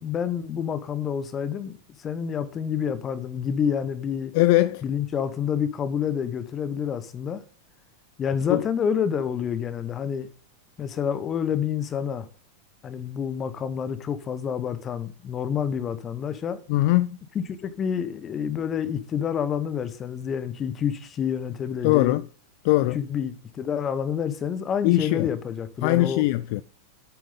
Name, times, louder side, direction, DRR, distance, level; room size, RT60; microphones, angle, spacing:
voice 1, 0.0-4.3 4.8-7.4 8.2-10.3 10.8-12.3 12.8-16.6 17.3-22.1 22.9-26.2, left 8 dB, 25° left, 1.2 m, -28 dB
voice 2, 4.3-4.8 8.5-8.6 16.7-17.2 21.8-22.2 22.6-23.0 24.8-25.3 25.8-26.6, left 18 dB, 45° left, 0.4 m, -21 dB
10.5 x 8.6 x 3.8 m
figure-of-eight pair, 90°, 0 cm